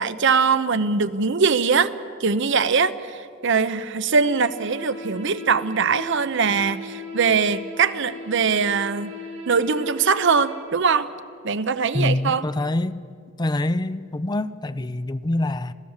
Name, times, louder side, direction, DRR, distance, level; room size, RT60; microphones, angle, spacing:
voice 1, 0.0-1.9 2.2-9.1 9.5-11.1 11.4-12.5, right 5 dB, 60° right, 0.8 m, -21 dB
sound 1, 4.2-10.6, left 1 dB, 90° right, 6.4 m, -37 dB
voice 2, 11.9-13.0 13.4-15.7, left 1 dB, 20° left, 0.5 m, -25 dB
26.5 x 17.0 x 7.3 m
head